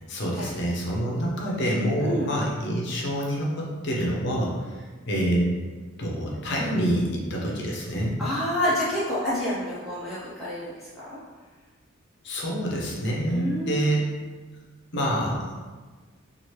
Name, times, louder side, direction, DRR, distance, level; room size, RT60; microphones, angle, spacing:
voice 1, 0.1-4.5 5.1-5.5 6.0-8.2 12.2-14.0 14.9-15.5, equal, 55° left, -3 dB, 0.6 m, -26 dB
voice 2, 8.2-11.2 13.3-14.1, left 1 dB, ahead, -11 dB, 0.5 m, -28 dB
3.0 x 2.4 x 3.0 m, 1.4 s
head